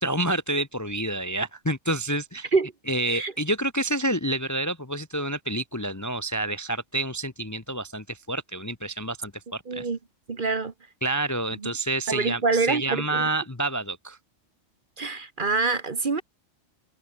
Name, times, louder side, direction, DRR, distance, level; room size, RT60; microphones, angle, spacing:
voice 1, 0.0-2.5 2.9-9.9 11.0-14.2, right 1 dB, 15° left, 0.9 m, -28 dB
voice 2, 9.7-10.0 10.3-10.7 11.6-11.7 12.1-13.3 15.0-16.2, right 4 dB, 40° right, 1.3 m, -26 dB
omnidirectional pair, 1.4 m